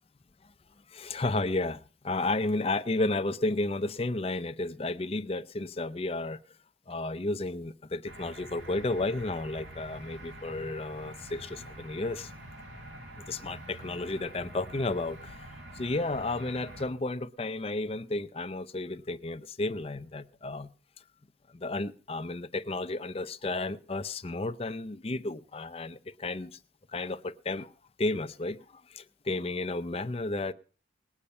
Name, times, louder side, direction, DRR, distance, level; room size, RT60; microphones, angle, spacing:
voice 1, 0.9-6.4 6.9-12.3 13.2-15.5 15.7-20.7 21.5-26.6 26.9-27.7 28.0-30.5, left 2 dB, 30° left, 13 dB, 0.5 m, -32 dB
sound 1, 8.1-16.9, right 1 dB, 70° right, 2.7 m, -46 dB
19.5 x 8.6 x 5.4 m, 0.41 s
head